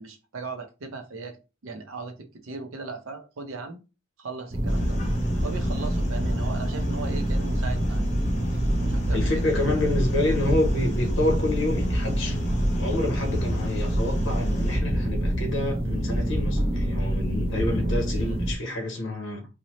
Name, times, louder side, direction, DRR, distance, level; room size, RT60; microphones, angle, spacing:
voice 1, 0.0-1.4 1.6-3.8 4.2-5.0 5.4-8.0 8.8-9.5 18.2-18.4, right 4 dB, 70° right, 0.6 m, -37 dB
sound 1, 4.5-18.6, equal, 30° right, 0.4 m, -26 dB
sound 2, 4.7-14.8, equal, 35° left, 0.7 m, -34 dB
voice 2, 9.1-19.5, left 2 dB, 60° left, 0.9 m, -28 dB
2.7 x 2.1 x 2.9 m
head